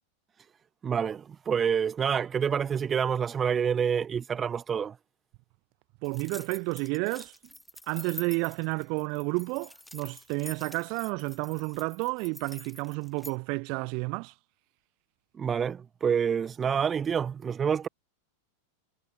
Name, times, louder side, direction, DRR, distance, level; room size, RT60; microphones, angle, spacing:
voice 1, 0.8-5.0 15.4-17.9, right 7 dB, 20° right, 0.7 m, -27 dB
sound 1, 6.0-13.4, left 1 dB, 5° left, 2.6 m, -47 dB
voice 2, 6.0-7.3 7.9-14.3, right 33 dB, 45° right, 1.3 m, -31 dB
figure-of-eight pair, 90°, 0 cm